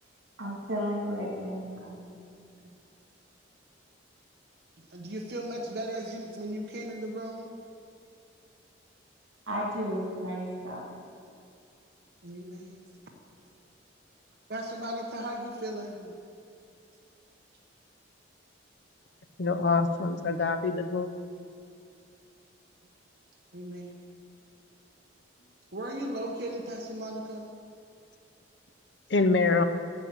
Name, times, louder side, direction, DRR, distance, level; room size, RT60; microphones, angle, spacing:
voice 1, 0.4-2.1 9.5-10.9, equal, 75° right, -1 dB, 2.7 m, -33 dB
voice 2, 4.9-7.6 12.2-12.8 14.5-16.1 23.5-24.0 25.7-27.5, right 1 dB, 55° right, -1 dB, 1.0 m, -37 dB
voice 3, 19.4-21.1 29.1-29.6, left 3 dB, 60° left, 9 dB, 0.7 m, -25 dB
10.5 x 7.5 x 8.2 m, 2.5 s
head